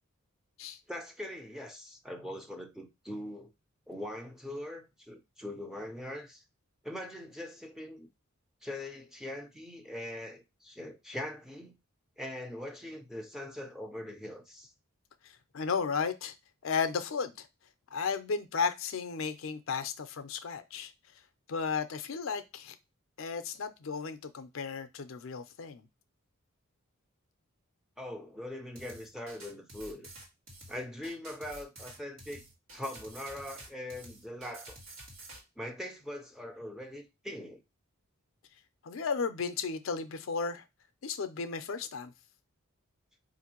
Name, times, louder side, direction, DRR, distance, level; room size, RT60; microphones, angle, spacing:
voice 1, 0.9-3.5 3.9-6.4 6.8-8.1 8.6-11.7 12.2-14.7 28.0-30.1 30.7-32.4 32.7-34.8 35.6-37.6, left 1 dB, ahead, 0.5 m, -42 dB
voice 2, 15.5-16.3 16.6-17.5 17.9-20.9 21.5-22.7 23.2-25.8 38.8-40.6 41.0-42.1, left 5 dB, 65° left, 0.5 m, -34 dB
sound 1, 28.8-35.4, right 1 dB, 75° right, 1.6 m, -49 dB
4.3 x 2.5 x 2.8 m
head